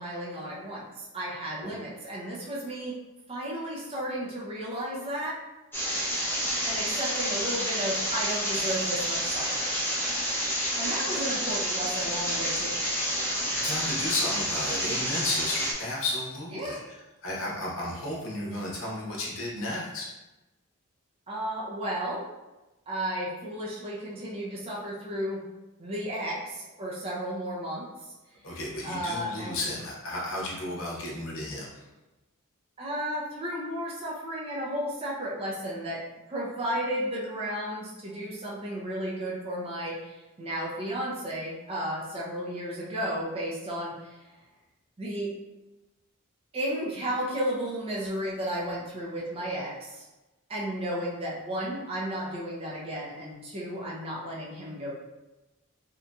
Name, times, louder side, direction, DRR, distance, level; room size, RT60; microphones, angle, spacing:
voice 1, 0.0-3.0 3.3-5.4 6.6-9.8 10.8-12.8 16.5-16.8 21.3-22.2 22.9-25.4 25.8-27.9 28.8-29.8 32.8-44.2 45.0-45.3 46.5-50.1 50.5-54.9, equal, 25° right, -5 dB, 0.5 m, -33 dB
sound 1, 5.7-15.7, equal, 10° left, 0.7 m, -29 dB
voice 2, 13.5-20.1 28.4-31.9, left 1 dB, 65° left, -4 dB, 0.8 m, -33 dB
2.9 x 2.6 x 2.2 m, 1.1 s
head